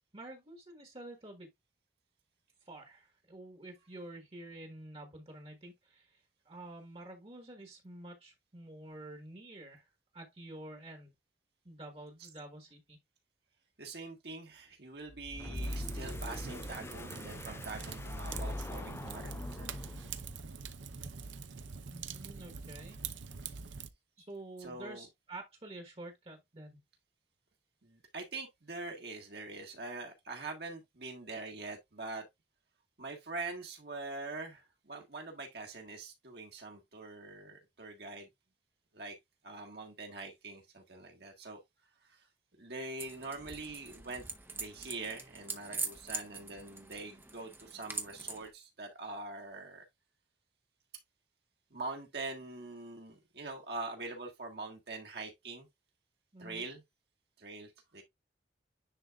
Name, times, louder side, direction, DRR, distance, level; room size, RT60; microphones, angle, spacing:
voice 1, 0.1-1.5 2.6-11.1 11.6-13.0 21.9-23.0 24.2-26.8 56.3-56.7, right 1 dB, 30° right, 1.4 m, -49 dB
voice 2, 13.8-19.7 24.6-25.1 27.8-32.3 33.0-38.3 38.9-39.2 39.4-41.6 42.0-42.3 42.6-44.2 44.5-49.8 51.7-55.7 56.4-56.8 57.4-58.0, right 3 dB, 60° right, 1.7 m, -44 dB
sound 1, 15.1-20.3, left 1 dB, 15° left, 0.3 m, -41 dB
Fire, 15.5-23.9, right 5 dB, 85° right, 0.7 m, -44 dB
sound 2, 43.0-48.5, right 3 dB, 10° right, 0.7 m, -43 dB
9.9 x 3.9 x 2.4 m
head